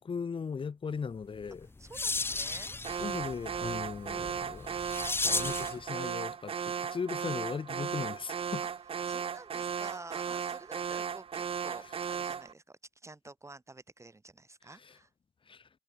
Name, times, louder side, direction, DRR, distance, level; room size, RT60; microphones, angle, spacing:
voice 1, 0.0-1.7 3.0-4.7 5.2-8.6 11.8-12.0 14.7-15.0 15.5-15.7, left 5 dB, 55° left, 0.9 m, -38 dB
sound 1, 1.4-5.8, left 3 dB, 20° left, 0.4 m, -35 dB
voice 2, 1.8-2.8 9.1-11.8 12.1-15.1, right 2 dB, 30° right, 2.3 m, -49 dB
Alarm, 2.8-12.5, right 7 dB, 60° right, 0.5 m, -36 dB
cardioid pair, 75°, 10 cm